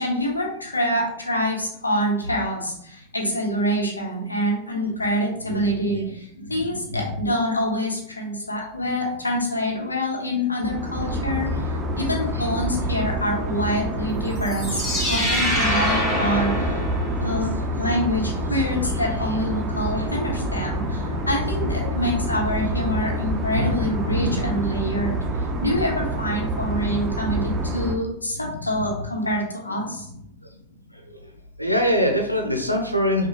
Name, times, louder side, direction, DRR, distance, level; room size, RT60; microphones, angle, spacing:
voice 1, 0.0-16.8 17.2-17.5 17.8-30.2, equal, 80° left, -1 dB, 0.9 m, -26 dB
sound 1, 10.6-28.0, equal, 20° right, 0.6 m, -27 dB
sound 2, 14.4-17.5, equal, 10° left, 1.5 m, -25 dB
voice 2, 31.6-33.3, equal, 90° right, 3 dB, 0.5 m, -22 dB
5.4 x 2.3 x 2.9 m, 0.71 s
figure-of-eight pair, 90°, 0 cm